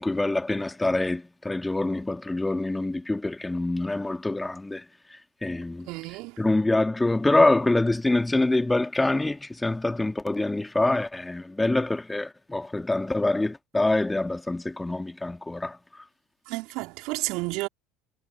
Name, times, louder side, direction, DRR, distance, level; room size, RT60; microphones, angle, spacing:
voice 1, 0.0-4.8 5.4-5.9 6.4-15.8, left 2 dB, 10° left, 2.3 m, -25 dB
voice 2, 5.9-6.4 16.5-17.7, right 24 dB, 55° right, 4.2 m, -31 dB
figure-of-eight pair, 65°, 0 cm